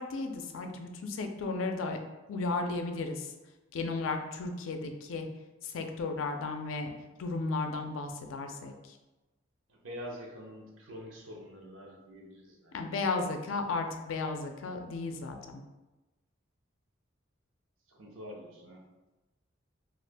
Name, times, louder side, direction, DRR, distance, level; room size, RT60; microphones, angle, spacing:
voice 1, 0.0-2.0 2.3-3.3 3.7-5.3 5.6-6.9 7.2-8.7 12.7-15.6, left 3 dB, 80° left, 5 dB, 0.4 m, -34 dB
voice 2, 9.7-12.7 17.9-18.8, equal, 80° right, -1 dB, 0.7 m, -46 dB
2.6 x 2.4 x 3.3 m, 1.1 s
head